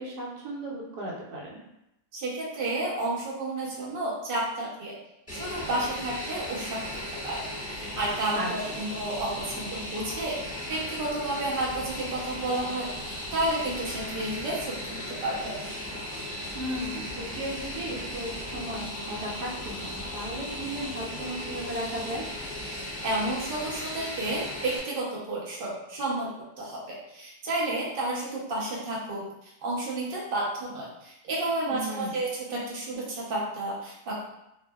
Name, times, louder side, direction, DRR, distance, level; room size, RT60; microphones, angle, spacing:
voice 1, 0.0-1.6 8.3-8.8 16.5-22.2 31.7-32.2, right 1 dB, 80° right, -3 dB, 1.3 m, -35 dB
voice 2, 2.1-5.0 5.3-6.9 7.2-10.4 10.7-15.5 23.0-26.3 26.6-34.2, right 2 dB, 50° right, -5 dB, 0.6 m, -31 dB
Fixed-wing aircraft airplane, 5.3-24.8, left 1 dB, 10° left, 1.0 m, -37 dB
2.7 x 2.4 x 2.3 m, 0.86 s
omnidirectional pair, 1.7 m